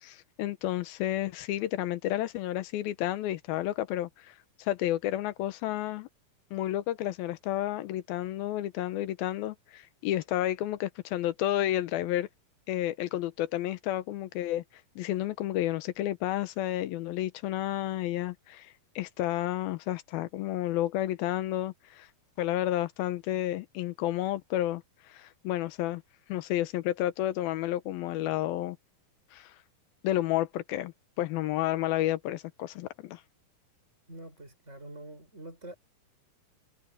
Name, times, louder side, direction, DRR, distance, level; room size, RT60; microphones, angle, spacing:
voice 1, 0.0-6.1 6.5-12.3 12.7-14.6 15.0-22.1 22.4-24.8 25.1-26.0 26.3-28.8 29.3-29.5 30.0-33.2, left 14 dB, 90° left, 2.8 m, -31 dB
voice 2, 34.1-35.8, right 1 dB, 20° right, 6.7 m, -45 dB
omnidirectional pair, 4.2 m